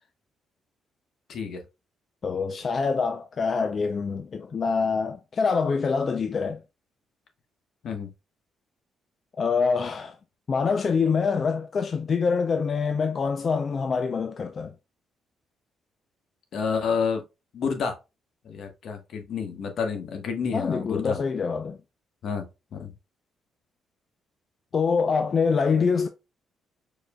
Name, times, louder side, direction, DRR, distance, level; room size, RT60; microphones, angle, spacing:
voice 1, 1.3-1.6 7.8-8.1 16.5-17.2 17.5-18.0 18.4-21.2 22.2-22.4 22.7-22.9, left 5 dB, 65° left, 1.2 m, -29 dB
voice 2, 2.2-6.6 9.4-10.2 10.5-14.7 20.5-21.8 24.7-26.1, left 5 dB, 45° left, 0.5 m, -25 dB
4.7 x 4.6 x 2.2 m
cardioid pair, 90°, 0 cm